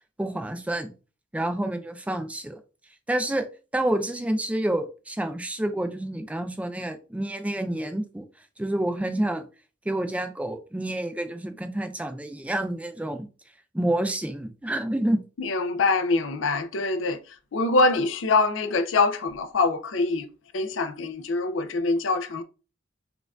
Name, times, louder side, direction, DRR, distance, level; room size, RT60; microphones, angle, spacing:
voice 1, 0.2-0.9 1.3-2.6 3.1-3.5 3.7-8.2 8.6-9.5 9.9-13.3 13.7-15.2, right 1 dB, 5° right, 0.3 m, -28 dB
voice 2, 15.4-20.3 20.5-22.4, left 3 dB, 90° left, 0.5 m, -24 dB
4.3 x 2.5 x 2.3 m
head